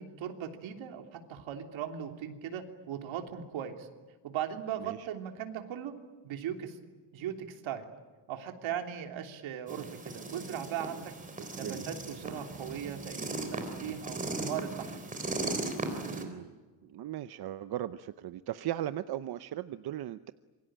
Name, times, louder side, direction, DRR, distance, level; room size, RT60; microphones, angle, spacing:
voice 1, 0.0-3.9 4.2-5.9 6.2-6.8 7.1-7.9 8.3-11.1 11.6-15.0, right 9 dB, 70° right, 5 dB, 3.3 m, -38 dB
sound 1, 9.7-16.2, right 2 dB, 15° right, 3.8 m, -37 dB
voice 2, 16.0-16.5 16.8-20.3, right 12 dB, 50° right, 12 dB, 0.8 m, -38 dB
27.0 x 23.5 x 8.9 m, 1.3 s
cardioid pair, 160°, 48 cm